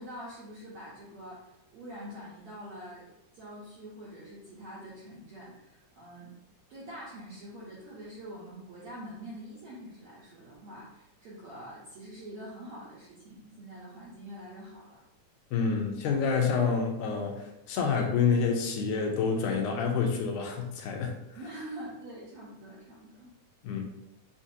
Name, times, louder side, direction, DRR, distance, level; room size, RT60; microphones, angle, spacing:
voice 1, 0.0-1.4 1.7-6.3 6.7-15.0 21.3-23.3, equal, 70° right, -7 dB, 1.4 m, -45 dB
voice 2, 15.5-21.1 23.6-23.8, left 5 dB, 80° left, 2 dB, 2.1 m, -28 dB
5.6 x 2.6 x 2.7 m, 0.89 s
omnidirectional pair, 3.6 m